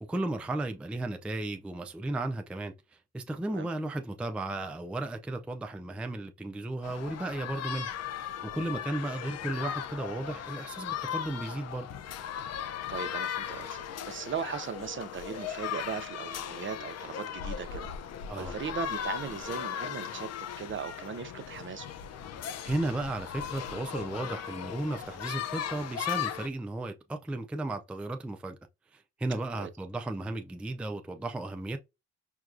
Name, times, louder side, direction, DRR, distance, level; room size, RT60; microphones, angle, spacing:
voice 1, 0.0-7.9 8.4-11.9 18.3-18.6 22.6-28.6 28.9-31.8, right 2 dB, 5° right, 0.4 m, -34 dB
sound 1, 6.8-26.5, left 9 dB, 60° left, 0.5 m, -37 dB
voice 2, 12.9-17.9 18.4-21.9 29.6-29.7, right 6 dB, 40° right, 0.6 m, -38 dB
4.6 x 2.2 x 2.5 m
cardioid pair, 90°, 30 cm